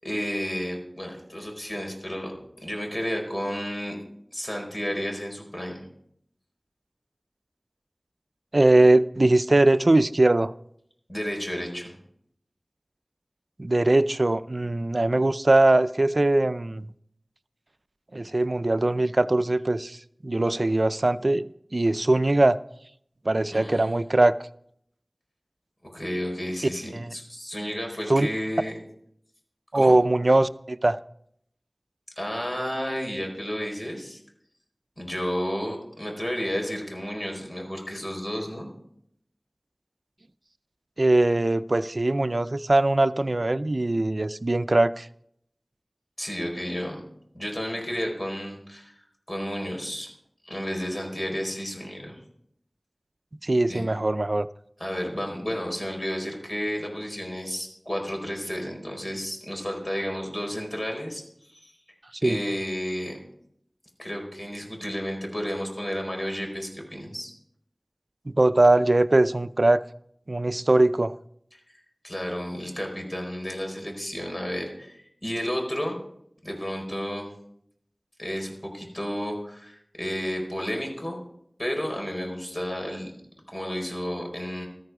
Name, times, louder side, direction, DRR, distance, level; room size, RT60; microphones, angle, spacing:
voice 1, 0.0-4.0 4.3-5.8 11.1-11.9 23.5-24.2 25.8-28.8 29.7-30.0 32.2-34.2 35.0-38.7 46.2-47.0 47.3-48.9 49.3-50.1 50.4-52.2 53.7-53.8 54.8-61.2 61.5-61.7 62.2-63.2 64.0-67.3 72.0-76.0 76.4-77.3 78.2-81.2 81.6-83.1 83.5-84.7, equal, 40° left, 4.6 m, -32 dB
voice 2, 8.5-10.5 13.6-16.9 18.1-20.0 20.2-22.6 23.3-24.3 26.9-27.1 28.1-28.3 29.7-31.0 41.0-45.1 53.4-54.5 62.2-62.4 68.3-69.8 70.3-71.1, right 2 dB, 60° right, 0.5 m, -21 dB
14.0 x 13.5 x 4.9 m
wide cardioid pair, 40°, 0 cm